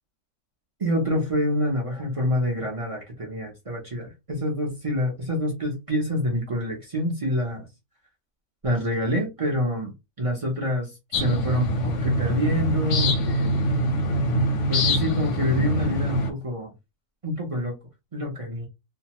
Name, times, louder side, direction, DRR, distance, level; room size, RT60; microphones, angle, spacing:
voice 1, 0.8-7.7 8.6-9.9 10.2-13.6 14.7-16.7 17.2-17.7 18.1-18.7, equal, 60° right, 0.3 m, -27 dB
sound 1, 11.1-16.3, equal, 60° left, 0.8 m, -24 dB
2.8 x 2.1 x 2.9 m
omnidirectional pair, 1.8 m